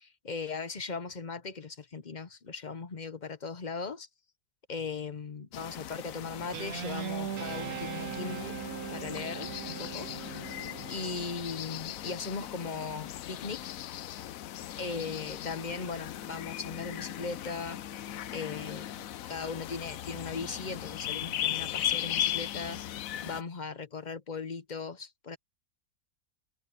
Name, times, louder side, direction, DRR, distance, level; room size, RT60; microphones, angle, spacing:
voice 1, 0.0-4.1 4.7-8.6 8.9-10.3 10.9-13.7 14.8-17.8 18.3-22.8 23.2-25.4, left 4 dB, 40° left, 0.8 m, -38 dB
sound 1, 5.5-23.4, left 12 dB, 70° left, 1.1 m, -38 dB
Guitar, 6.5-11.3, right 9 dB, 85° right, 1.3 m, -39 dB
omnidirectional pair, 1.5 m